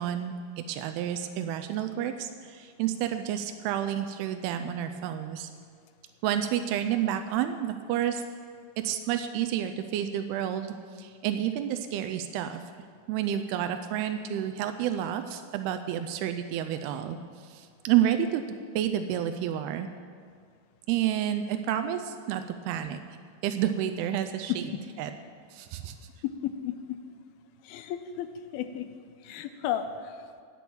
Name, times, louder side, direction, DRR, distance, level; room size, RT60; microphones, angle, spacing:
voice 1, 0.0-5.5 6.2-8.2 8.8-12.6 13.1-17.2 17.5-19.9 20.9-23.0 23.4-24.7 25.0-25.1 25.5-25.9, right 10 dB, 90° right, 8 dB, 2.6 m, -30 dB
voice 2, 26.4-26.7 27.6-28.3 28.5-28.9 29.2-30.1, left 10 dB, 85° left, 9 dB, 2.5 m, -33 dB
18.0 x 6.2 x 7.1 m, 2.1 s
omnidirectional pair, 4.5 m